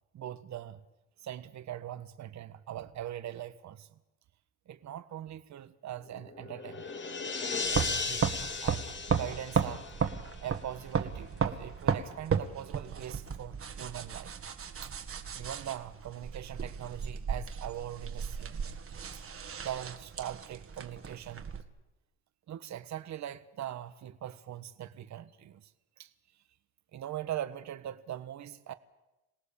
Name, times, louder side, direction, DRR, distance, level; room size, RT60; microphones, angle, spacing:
voice 1, 0.1-0.8 1.2-3.9 4.7-6.9 7.7-8.3 8.6-9.9 10.4-14.3 14.8-15.0 15.3-18.8 19.1-19.2 19.6-21.5 22.5-25.7 26.0-26.1 26.9-28.7, right 11 dB, 65° right, 1.3 m, -41 dB
sound 1, 6.1-10.7, left 4 dB, 40° left, 2.4 m, -36 dB
sound 2, 7.6-21.6, right 6 dB, 45° right, 1.9 m, -35 dB
27.0 x 18.0 x 7.1 m
cardioid pair, 90°, 30 cm